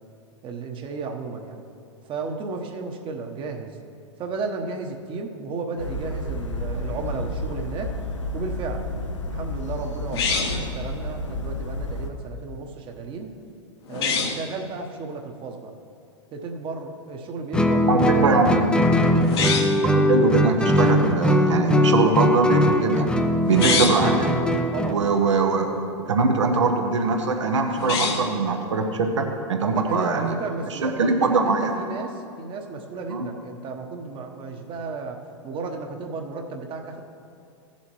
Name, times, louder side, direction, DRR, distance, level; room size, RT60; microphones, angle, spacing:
voice 1, 0.4-1.6 2.1-3.8 4.2-7.9 8.3-8.9 9.3-13.3 13.9-15.7 16.3-18.7 23.6-23.9 24.7-25.0 29.7-37.0, right 4 dB, 35° right, 3 dB, 1.1 m, -33 dB
sound 1, 5.8-12.1, left 1 dB, 80° left, 0.9 m, -31 dB
sound 2, 10.1-10.7 13.9-14.4 19.2-19.8 23.4-24.1 27.7-28.4, left 5 dB, 60° left, 1.2 m, -25 dB
Guitar, 17.5-25.0, left 1 dB, 5° left, 0.6 m, -20 dB
voice 2, 17.9-18.8 19.9-23.1 23.5-24.3 24.9-30.3 30.7-31.7 33.1-33.3, right 3 dB, 75° right, 4 dB, 1.0 m, -22 dB
16.5 x 7.2 x 3.1 m, 2.5 s
figure-of-eight pair, 95°, 15 cm